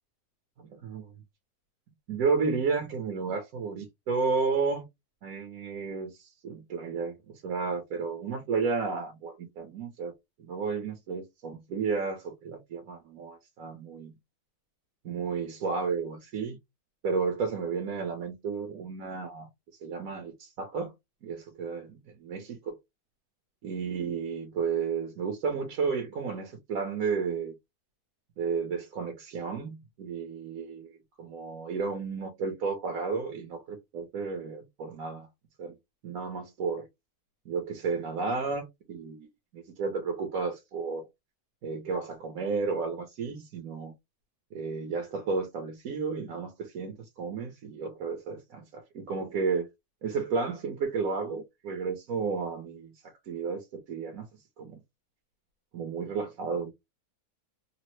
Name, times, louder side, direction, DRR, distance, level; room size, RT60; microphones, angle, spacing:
voice 1, 2.1-4.8 5.2-10.1 10.4-14.1 15.0-16.6 17.0-19.5 19.8-20.9 21.2-22.8 23.6-27.5 28.4-30.9 31.2-35.3 35.6-35.8 36.0-36.9 37.5-39.3 39.5-41.1 41.6-43.9 44.5-49.7 50.0-54.3 54.6-54.8 55.7-56.7, right 5 dB, 70° right, 1.1 m, -32 dB
3.3 x 2.0 x 3.0 m
omnidirectional pair, 1.6 m